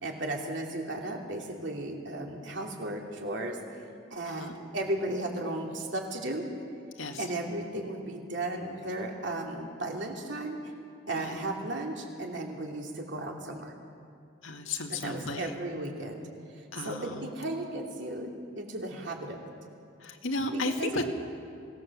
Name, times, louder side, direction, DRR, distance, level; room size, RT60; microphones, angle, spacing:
voice 1, 0.0-3.6 4.1-6.4 7.2-10.6 11.1-13.7 14.8-16.3 16.8-18.3 18.5-19.5 20.5-21.1, right 1 dB, 65° right, 1 dB, 2.9 m, -35 dB
voice 2, 14.4-15.5 16.7-17.3 20.0-21.1, left 2 dB, 90° left, 3 dB, 2.0 m, -34 dB
23.5 x 18.0 x 7.3 m, 2.4 s
head